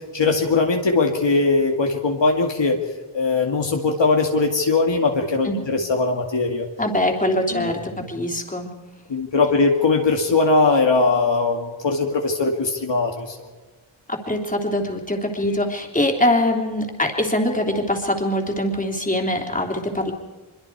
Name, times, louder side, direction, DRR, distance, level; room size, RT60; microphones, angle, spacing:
voice 1, 0.1-2.8 3.1-6.7 7.5-8.1 9.1-13.4, left 3 dB, 60° left, 2 dB, 2.2 m, -20 dB
voice 2, 6.8-7.8 8.1-8.7 14.1-20.1, left 1 dB, 15° left, 0 dB, 3.2 m, -23 dB
25.0 x 23.0 x 4.7 m, 1.3 s
wide cardioid pair, 95°, 49 cm